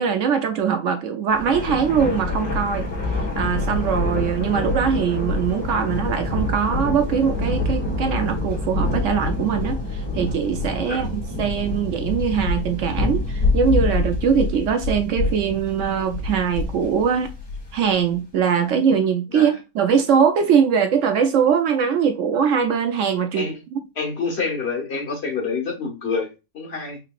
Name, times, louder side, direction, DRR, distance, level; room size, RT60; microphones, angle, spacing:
voice 1, 0.0-2.9 3.4-17.3 17.7-23.8, right 7 dB, 70° right, 0.8 m, -21 dB
Thunder, 1.3-17.9, left 2 dB, 65° left, 2.4 m, -26 dB
voice 2, 23.9-27.0, left 4 dB, 50° left, 1.5 m, -27 dB
5.8 x 2.8 x 2.4 m
omnidirectional pair, 1.5 m